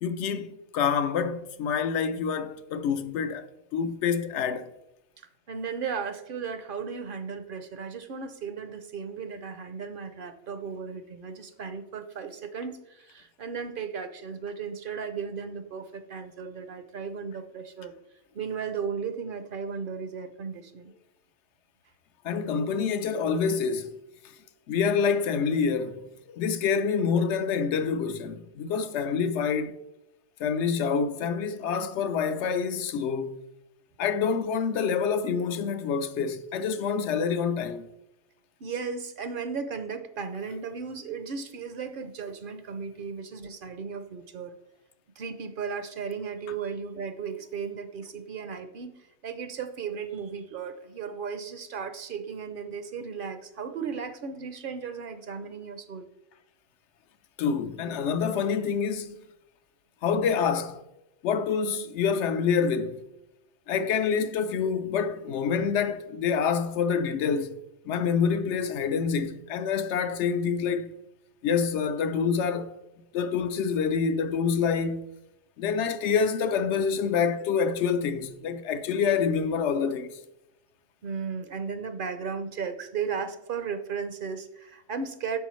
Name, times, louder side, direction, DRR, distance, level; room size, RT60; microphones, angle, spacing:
voice 1, 0.0-4.7 22.2-24.0 24.7-29.8 30.4-33.4 34.0-37.9 57.4-59.2 60.0-60.8 61.2-63.0 63.7-67.6 67.9-70.9 71.4-72.8 73.1-75.0 75.6-80.1, left 6 dB, 80° left, 0.9 m, -27 dB
voice 2, 5.5-17.9 18.3-20.9 38.6-44.5 45.2-56.1 81.0-85.4, right 6 dB, 60° right, 0.7 m, -35 dB
8.3 x 6.0 x 3.1 m
omnidirectional pair, 1.2 m